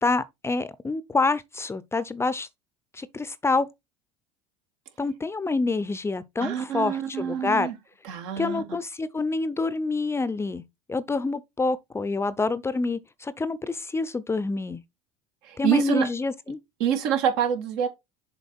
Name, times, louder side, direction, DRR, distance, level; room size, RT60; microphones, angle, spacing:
voice 1, 0.0-2.5 2.9-3.7 5.0-7.7 8.4-10.6 10.9-14.8 15.6-16.6, left 3 dB, 15° left, 0.6 m, -27 dB
voice 2, 6.4-7.7 8.0-8.6 15.4-16.1 16.8-17.9, right 8 dB, 70° right, 1.7 m, -26 dB
7.0 x 4.1 x 4.3 m
hypercardioid pair, 75°, 15 cm